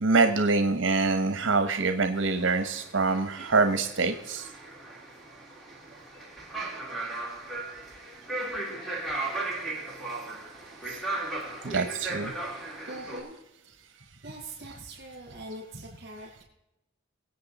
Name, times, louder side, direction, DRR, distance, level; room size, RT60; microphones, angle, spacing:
voice 1, 0.0-4.5 10.9-11.0 11.3-12.3, right 3 dB, 70° right, 8 dB, 1.0 m, -25 dB
sound 1, 2.1-13.2, right 2 dB, ahead, 2.9 m, -37 dB
voice 2, 12.8-13.4 13.8-16.5, right 1 dB, 55° right, -4 dB, 5.1 m, -43 dB
23.5 x 8.6 x 4.1 m, 0.92 s
head